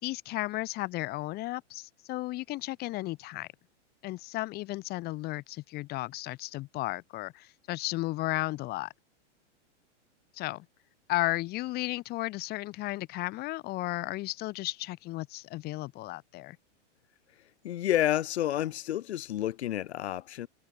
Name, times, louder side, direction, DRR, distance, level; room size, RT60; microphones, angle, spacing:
voice 1, 0.0-3.5 4.0-8.9 10.3-10.6 11.1-16.6, left 19 dB, 25° left, 6.6 m, -34 dB
voice 2, 17.6-20.5, left 12 dB, 60° left, 4.9 m, -29 dB
supercardioid pair, 170°, 36 cm